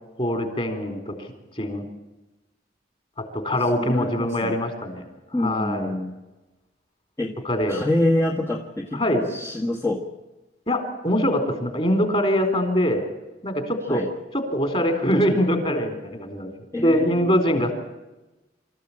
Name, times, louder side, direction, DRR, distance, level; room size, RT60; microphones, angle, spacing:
voice 1, 0.2-1.3 1.6-1.8 3.2-5.0 5.3-5.9 7.4-7.9 8.9-9.3 10.7-13.1 13.4-14.0 14.3-16.5 16.8-17.7, equal, 35° left, 6 dB, 4.1 m, -23 dB
voice 2, 3.7-4.5 5.3-6.1 7.2-7.3 7.7-10.0 13.9-14.1 16.7-17.3, left 1 dB, 15° left, -1 dB, 1.5 m, -26 dB
26.0 x 14.5 x 8.8 m, 1.1 s
head